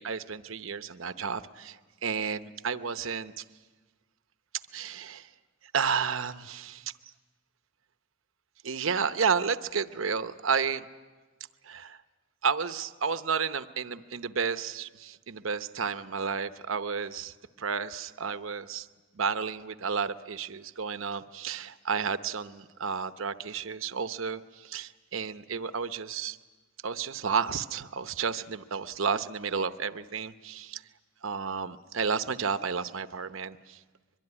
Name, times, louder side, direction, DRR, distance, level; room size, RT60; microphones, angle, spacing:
voice 1, 0.0-3.4 4.7-5.3 5.7-6.9 8.6-10.8 11.6-12.0 12.4-18.9 19.2-26.4 26.8-30.8 31.2-33.8, right 6 dB, 75° right, 11 dB, 0.8 m, -32 dB
23.5 x 23.0 x 9.8 m, 1.3 s
head